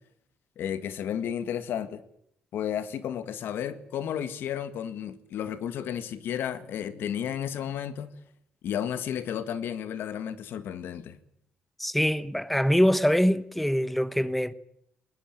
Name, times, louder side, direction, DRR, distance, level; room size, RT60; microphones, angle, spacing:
voice 1, 0.6-2.0 2.5-8.1 8.6-11.2, left 9 dB, 80° left, 1.7 m, -32 dB
voice 2, 11.8-14.5, equal, 5° left, 1.1 m, -24 dB
20.5 x 19.5 x 9.3 m
cardioid pair, 100°, 4 cm